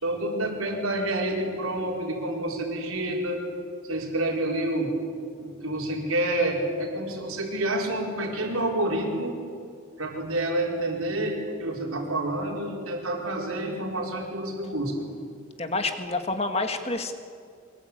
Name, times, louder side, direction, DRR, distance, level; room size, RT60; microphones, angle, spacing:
voice 1, 0.0-3.4 3.8-5.0 5.4-9.4 10.0-15.1, right 1 dB, 80° right, 0 dB, 4.8 m, -28 dB
voice 2, 15.6-17.1, left 2 dB, 30° left, 6 dB, 1.8 m, -28 dB
24.5 x 21.5 x 8.7 m, 2.3 s
head